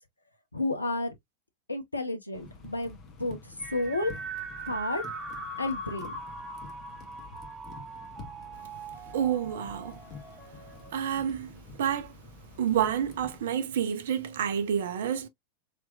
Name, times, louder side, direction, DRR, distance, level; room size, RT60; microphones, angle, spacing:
voice 1, 0.5-1.1 1.7-4.2 4.6-5.0 5.6-6.1, left 2 dB, 80° left, 0.8 m, -31 dB
sound 1, 2.3-13.4, left 3 dB, 35° left, 1.0 m, -49 dB
sound 2, 3.6-11.1, right 2 dB, 25° right, 0.9 m, -41 dB
voice 2, 9.1-10.0 10.9-11.5 11.8-12.1 12.6-15.3, right 9 dB, 60° right, 0.6 m, -29 dB
3.4 x 3.0 x 2.3 m
figure-of-eight pair, 90°, 0 cm